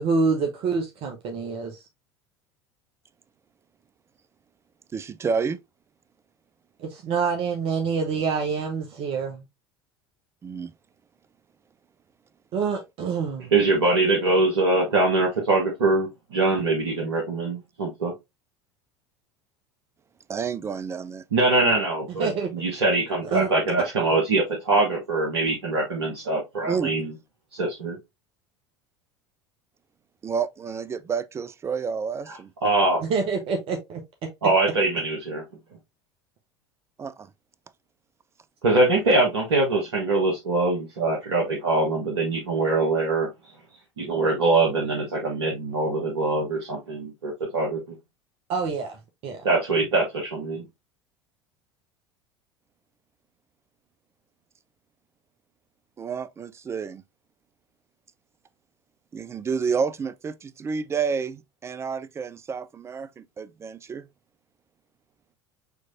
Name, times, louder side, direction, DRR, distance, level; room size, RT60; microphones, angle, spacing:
voice 1, 0.0-1.8 6.8-9.4 12.5-13.5 22.2-22.5 23.2-23.5 33.0-34.3 48.5-49.5, right 5 dB, 40° right, 0.8 m, -27 dB
voice 2, 4.9-5.6 10.4-10.7 20.3-21.2 26.7-26.9 30.2-32.5 37.0-37.3 56.0-57.0 59.1-64.1, right 6 dB, 20° right, 0.4 m, -30 dB
voice 3, 13.5-18.1 21.3-27.1 27.5-28.0 32.3-33.0 34.4-35.4 38.6-43.3 44.0-47.8 49.4-50.6, right 2 dB, 70° right, 1.1 m, -23 dB
6.4 x 3.1 x 2.5 m
figure-of-eight pair, 70°, 14 cm